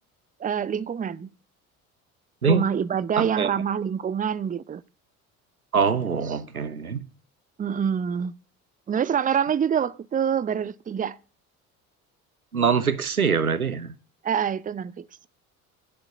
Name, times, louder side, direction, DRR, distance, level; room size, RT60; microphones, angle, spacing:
voice 1, 0.4-1.3 2.4-4.8 7.6-8.3 8.9-11.2 14.2-15.3, right 8 dB, 20° right, 0.7 m, -26 dB
voice 2, 3.2-3.5 5.7-7.0 12.5-13.9, right 6 dB, 90° right, 0.7 m, -23 dB
10.0 x 7.7 x 9.3 m
figure-of-eight pair, 55°, 42 cm